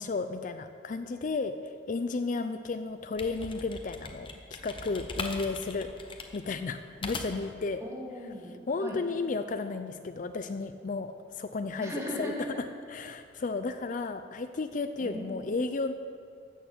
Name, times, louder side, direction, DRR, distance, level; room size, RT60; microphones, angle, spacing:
voice 1, 0.0-7.8 8.7-11.9 12.2-12.3 12.9-15.9, left 3 dB, 45° left, 9 dB, 0.4 m, -33 dB
sound 1, 2.9-7.6, left 3 dB, 30° left, 0.9 m, -40 dB
voice 2, 7.8-8.5 8.8-9.0 11.8-12.6 15.0-15.6, equal, 15° right, -3 dB, 2.3 m, -38 dB
13.0 x 6.6 x 7.9 m, 2.2 s
head